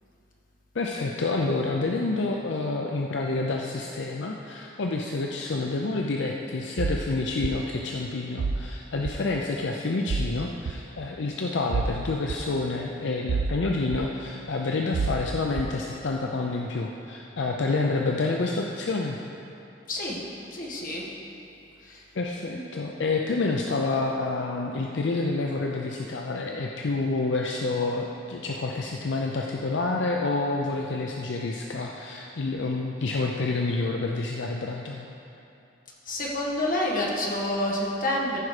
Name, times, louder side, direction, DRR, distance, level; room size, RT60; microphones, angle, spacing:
voice 1, 0.7-19.2 22.2-35.1, left 3 dB, 70° left, 0 dB, 0.5 m, -28 dB
sound 1, 6.8-7.0 7.4-7.5 8.4-8.6 9.0-9.2 10.1-10.3 10.6-10.7 11.7-11.9 12.3-12.4 13.3-13.6 13.9-14.0 14.9-15.2 15.6-15.7, right 4 dB, 70° right, 0.4 m, -27 dB
voice 2, 19.9-20.2 20.5-21.0 21.8-22.0 22.4-22.7 36.1-38.4, left 1 dB, 45° left, -3 dB, 1.5 m, -28 dB
14.5 x 4.9 x 4.9 m, 2.8 s
head